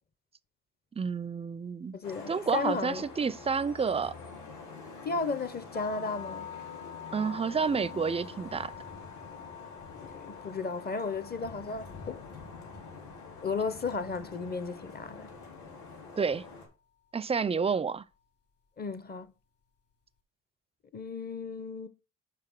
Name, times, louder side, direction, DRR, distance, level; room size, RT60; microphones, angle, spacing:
voice 1, 1.0-2.0 2.3-4.1 7.1-8.7 16.2-16.4 17.1-18.0, right 5 dB, 20° right, 0.4 m, -29 dB
voice 2, 1.9-3.0 5.0-6.5 9.9-12.2 13.4-15.3 18.8-19.3 20.9-21.9, left 4 dB, 30° left, 0.7 m, -34 dB
Vehicle horn car horn honking / Traffic noise roadway noise, 2.0-16.7, left 4 dB, 75° left, 3.6 m, -47 dB
sound 1, 5.7-15.8, left 9 dB, 50° left, 2.5 m, -48 dB
5.9 x 4.8 x 6.0 m
cardioid pair, 90°, 30 cm